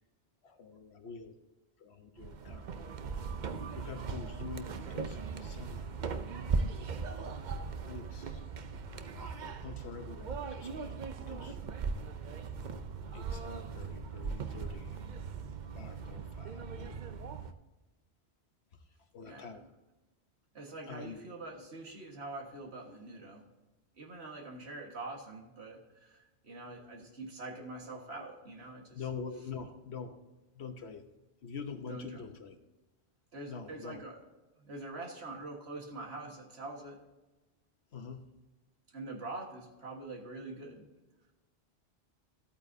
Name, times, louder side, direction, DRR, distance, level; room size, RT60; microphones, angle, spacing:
voice 1, 0.4-1.4 1.8-2.7 3.7-6.0 7.8-8.5 9.2-11.0 11.3-11.6 13.1-15.0 15.7-17.0 19.1-19.6 20.9-21.2 28.9-30.2 30.5-31.1 31.4-32.6 33.5-34.0 37.9-38.3, left 5 dB, 80° left, 7 dB, 1.3 m, -45 dB
sound 1, 2.2-17.5, right 5 dB, 50° right, 0.7 m, -39 dB
voice 2, 19.2-19.7 20.5-23.5 24.0-29.0 31.9-32.2 33.3-34.2 34.6-37.0 38.9-40.9, right 2 dB, 80° right, 1 dB, 1.9 m, -44 dB
14.0 x 8.6 x 2.8 m, 1.1 s
omnidirectional pair, 1.1 m